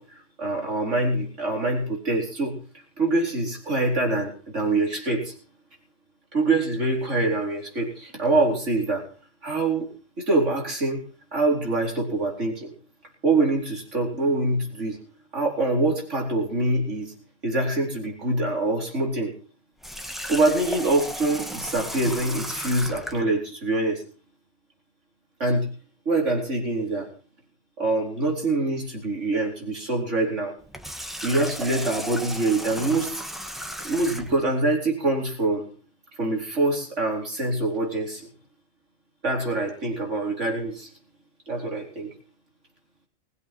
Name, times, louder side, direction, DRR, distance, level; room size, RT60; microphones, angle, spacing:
voice 1, 0.0-5.3 6.3-9.1 9.4-9.9 10.2-11.0 11.3-12.7 13.2-15.0 15.3-17.1 17.4-19.3 20.3-24.0 25.4-25.7 26.0-27.1 27.8-30.5 31.2-33.2 33.8-35.7 36.2-38.3 39.2-40.9 41.5-42.1, right 2 dB, 65° right, 0 dB, 4.8 m, -25 dB
Water tap faucet, 19.8-23.2 30.6-34.4, equal, ahead, 1.4 m, -35 dB
21.0 x 8.1 x 6.1 m, 0.39 s
omnidirectional pair, 1.4 m